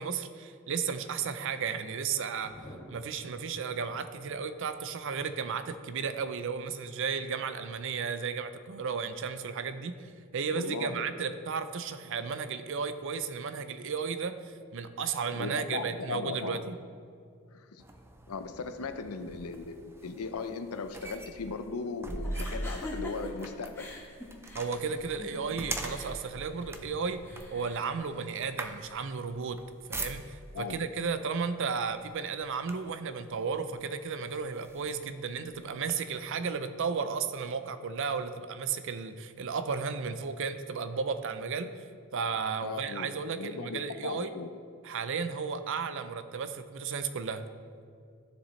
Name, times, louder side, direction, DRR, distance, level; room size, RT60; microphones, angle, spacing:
voice 1, 0.0-2.5 2.9-16.8 24.5-27.2 27.5-29.6 29.9-41.8 42.1-44.3 44.8-47.5, right 5 dB, 60° right, 10 dB, 0.5 m, -34 dB
Thunder, 2.4-18.5 18.8-18.9 19.2-19.3 19.6-20.0, equal, 55° left, 2.4 m, -59 dB
voice 2, 10.5-11.1 15.3-16.6 17.5-17.8 18.3-23.9 30.5-30.8 42.6-43.1 43.4-44.5, left 4 dB, 85° left, 9 dB, 0.6 m, -38 dB
sound 1, 17.8-30.6 31.5-31.7 32.1-33.1 33.7-33.8 34.3-35.9, right 1 dB, 10° right, 0.5 m, -41 dB
sound 2, 22.2-29.1, left 2 dB, 10° left, 1.2 m, -45 dB
12.5 x 7.0 x 3.2 m, 2.3 s
head